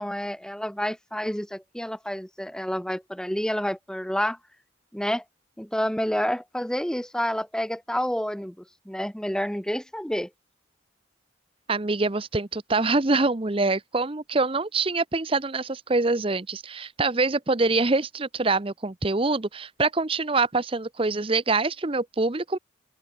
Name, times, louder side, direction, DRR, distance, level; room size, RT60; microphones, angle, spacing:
voice 1, 0.0-4.4 4.9-5.2 5.6-8.5 8.9-10.3, equal, 5° left, 1.0 m, -29 dB
voice 2, 11.7-22.6, right 3 dB, 25° right, 0.7 m, -25 dB
open air
head